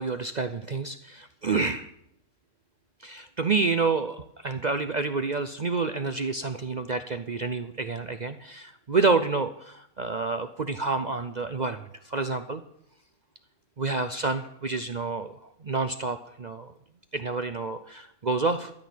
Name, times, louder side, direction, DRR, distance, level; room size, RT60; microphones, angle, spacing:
voice 1, 0.0-1.9 3.0-12.6 13.8-16.7 17.1-18.7, right 4 dB, 50° right, 10 dB, 0.5 m, -28 dB
13.5 x 6.4 x 10.0 m, 0.73 s
omnidirectional pair, 1.6 m